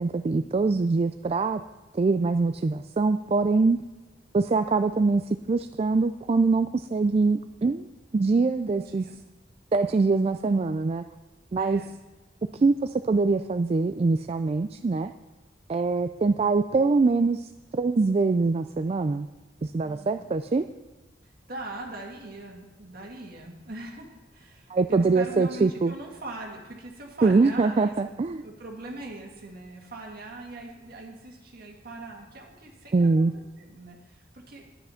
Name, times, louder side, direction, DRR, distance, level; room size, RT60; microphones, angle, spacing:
voice 1, 0.0-1.6 1.9-3.8 4.3-5.2 5.5-7.9 8.1-9.0 9.7-11.0 11.5-11.8 12.5-15.1 15.7-19.3 19.6-20.6 24.7-25.9 27.2-28.4 32.9-33.3, right 3 dB, 35° right, 9 dB, 0.3 m, -23 dB
voice 2, 8.7-9.2 11.6-11.9 19.8-20.4 21.5-27.9 28.4-34.7, right 2 dB, 55° right, 0 dB, 2.1 m, -41 dB
10.5 x 10.0 x 5.7 m, 1.2 s
head